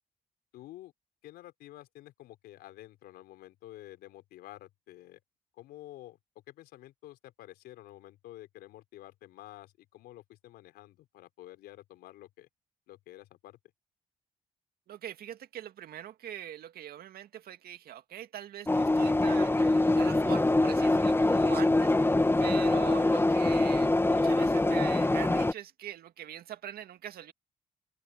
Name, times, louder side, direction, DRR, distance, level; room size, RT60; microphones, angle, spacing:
voice 1, 0.5-0.9 1.2-5.2 5.6-6.2 6.5-12.5 12.9-13.6, left 15 dB, 80° left, 4.2 m, -50 dB
voice 2, 14.9-21.9 22.4-27.3, right 11 dB, 70° right, 2.2 m, -43 dB
sound 1, 18.7-25.5, left 2 dB, 15° left, 1.4 m, -24 dB
hypercardioid pair, 50°, 16 cm